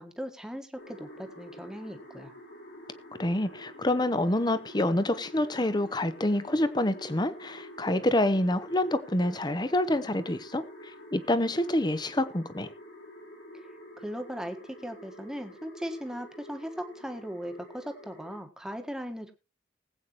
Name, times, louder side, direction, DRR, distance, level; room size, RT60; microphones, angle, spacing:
voice 1, 0.0-2.3 13.5-13.7 14.0-19.3, equal, 5° right, 1.4 m, -38 dB
sound 1, 0.8-18.4, equal, 80° left, 5.5 m, -48 dB
voice 2, 3.2-10.6 11.1-12.7, left 1 dB, 25° left, 0.9 m, -27 dB
20.0 x 8.5 x 3.1 m
head